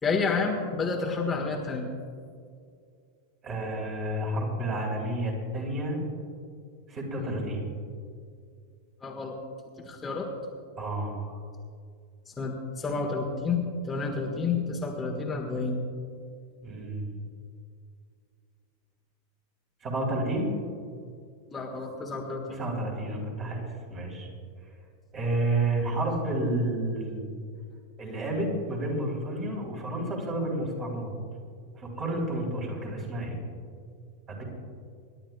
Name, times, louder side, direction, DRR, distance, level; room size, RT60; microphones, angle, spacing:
voice 1, 0.0-1.9 7.2-7.3 9.0-9.4 9.8-10.3 12.2-15.8 21.5-22.6, left 4 dB, 15° left, -1 dB, 1.5 m, -30 dB
voice 2, 3.4-6.0 6.9-7.6 10.8-11.4 16.6-17.1 19.8-20.5 22.5-24.3 25.1-27.3 28.0-31.1 31.8-33.4 34.3-34.4, right 1 dB, 30° right, -1 dB, 3.9 m, -30 dB
27.0 x 12.0 x 2.3 m, 2.3 s
figure-of-eight pair, 90°, 0 cm